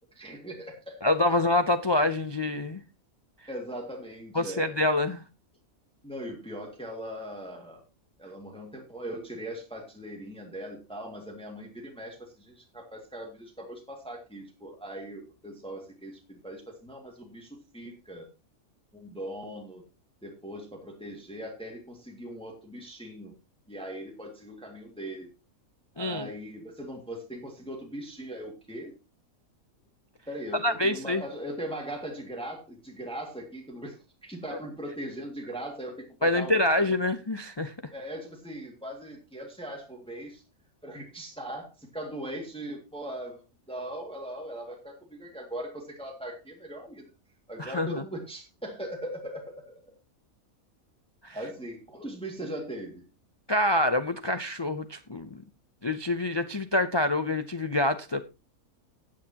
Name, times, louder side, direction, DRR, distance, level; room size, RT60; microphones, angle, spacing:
voice 1, 0.1-1.0 3.5-4.8 6.0-7.8 8.2-18.3 18.9-19.8 20.2-23.4 23.7-25.3 26.0-28.9 30.3-36.9 37.9-40.4 40.8-47.0 47.5-50.0 51.3-53.0, right 1 dB, 5° left, 2.0 m, -40 dB
voice 2, 1.0-2.8 4.3-5.2 26.0-26.3 30.6-31.2 36.2-37.7 47.6-48.0 51.2-51.4 53.5-55.4 55.8-58.2, left 2 dB, 40° left, 0.4 m, -26 dB
16.0 x 8.8 x 2.9 m
omnidirectional pair, 1.5 m